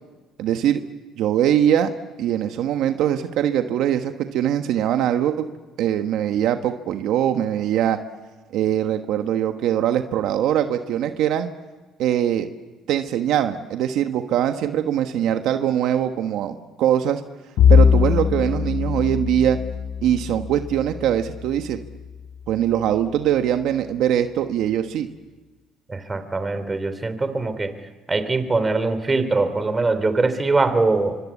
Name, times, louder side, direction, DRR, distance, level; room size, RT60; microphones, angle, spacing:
voice 1, 0.4-0.8 1.2-1.9 2.2-5.5 5.8-8.0 8.5-11.5 12.0-12.5 12.9-17.2 17.7-19.6 20.0-21.8 22.5-25.1, right 10 dB, 70° right, 7 dB, 1.4 m, -22 dB
Bowed string instrument, 17.6-22.2, left 7 dB, 60° left, 1.0 m, -21 dB
voice 2, 25.9-27.7 28.1-31.2, right 3 dB, 20° right, 10 dB, 2.9 m, -22 dB
26.0 x 25.0 x 8.4 m, 1.3 s
cardioid pair, 105°, 0 cm